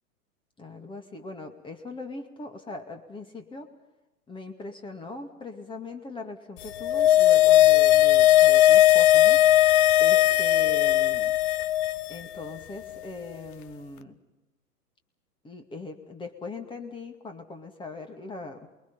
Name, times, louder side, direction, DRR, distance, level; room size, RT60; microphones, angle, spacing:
voice 1, 0.6-3.7 4.3-9.4 10.0-11.3 12.1-14.2 15.4-18.6, left 3 dB, 10° left, 6 dB, 2.2 m, -40 dB
sound 1, 6.7-12.1 12.4-12.5, left 13 dB, 35° left, 0.9 m, -18 dB
28.5 x 22.5 x 5.5 m, 1.0 s
figure-of-eight pair, 115°, 47 cm